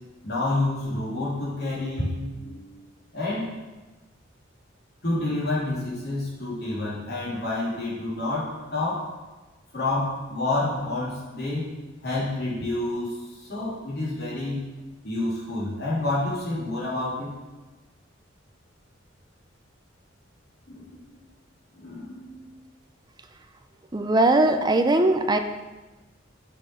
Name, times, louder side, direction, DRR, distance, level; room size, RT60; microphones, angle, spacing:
voice 1, 0.2-2.8 3.1-3.5 5.0-9.1 9.7-11.7 12.0-14.7 15.0-17.3 20.7-21.0 21.7-22.5, left 2 dB, 60° left, -7 dB, 3.2 m, -29 dB
voice 2, 23.9-25.4, right 2 dB, 20° right, 6 dB, 0.5 m, -20 dB
6.9 x 6.4 x 5.9 m, 1.2 s
head